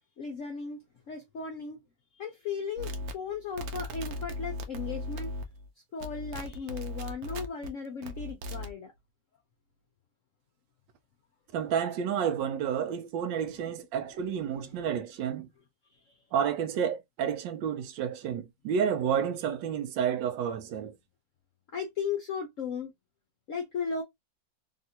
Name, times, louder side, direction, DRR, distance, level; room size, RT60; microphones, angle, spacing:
voice 1, 0.2-0.8 1.1-1.8 2.1-5.3 5.9-8.9 14.6-14.9 15.9-16.1 21.7-22.9 23.5-24.0, left 5 dB, 60° left, 0.8 m, -36 dB
sound 1, 2.8-5.7 6.0-7.7 8.0-8.7, left 1 dB, 65° right, 1.0 m, -37 dB
voice 2, 11.5-15.5 16.3-20.9, right 8 dB, 90° right, 1.3 m, -30 dB
3.5 x 2.5 x 2.8 m
omnidirectional pair, 2.0 m